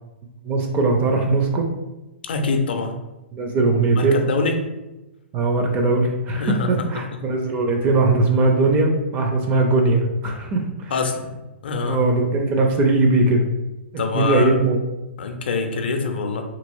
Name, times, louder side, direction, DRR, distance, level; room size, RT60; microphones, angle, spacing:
voice 1, 0.4-1.7 3.3-4.2 5.3-10.9 11.8-13.5 14.1-14.8, right 2 dB, 25° right, 2 dB, 0.4 m, -20 dB
voice 2, 2.2-2.9 4.0-4.5 6.4-6.7 10.9-12.0 14.0-14.5 15.2-16.4, left 4 dB, 55° left, 5 dB, 0.5 m, -24 dB
2.9 x 2.8 x 2.6 m, 1.0 s
figure-of-eight pair, 110°, 6 cm